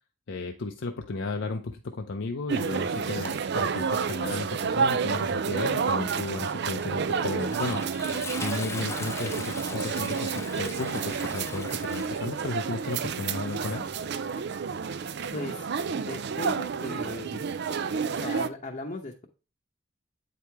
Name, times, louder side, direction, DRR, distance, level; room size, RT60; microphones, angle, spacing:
voice 1, 0.3-7.8 8.4-13.8, left 3 dB, 65° left, 4 dB, 0.6 m, -34 dB
sound 1, 2.5-18.5, right 6 dB, 60° right, 0.5 m, -30 dB
Toilet flush, 6.9-15.3, left 3 dB, 15° left, 0.7 m, -41 dB
voice 2, 15.3-15.7 15.9-17.4 18.1-19.3, left 2 dB, 40° left, 0 dB, 0.8 m, -37 dB
8.5 x 4.8 x 3.4 m, 0.32 s
head